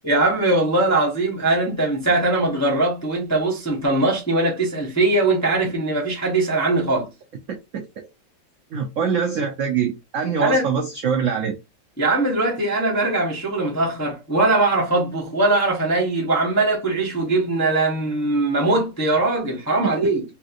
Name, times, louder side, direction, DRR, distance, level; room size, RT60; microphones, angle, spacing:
voice 1, 0.0-7.1 10.4-10.7 12.0-20.2, right 2 dB, 20° left, 0.4 m, -21 dB
voice 2, 7.7-8.1 8.7-11.5, right 6 dB, 80° right, 0.7 m, -24 dB
3.3 x 2.8 x 2.5 m
omnidirectional pair, 2.0 m